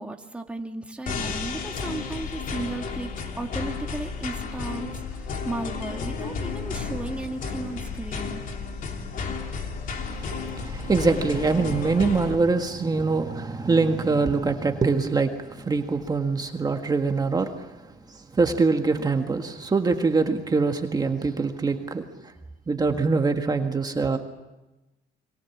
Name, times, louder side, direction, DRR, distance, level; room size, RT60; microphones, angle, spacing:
voice 1, 0.0-8.4 21.2-21.4, right 2 dB, 5° right, 3 dB, 1.8 m, -35 dB
sound 1, 1.1-12.3, left 5 dB, 55° left, 3.2 m, -32 dB
voice 2, 10.1-17.7 18.1-22.1 22.7-24.2, right 4 dB, 25° right, 5 dB, 1.7 m, -24 dB
27.0 x 23.5 x 7.3 m, 1.1 s
cardioid pair, 110°, 17 cm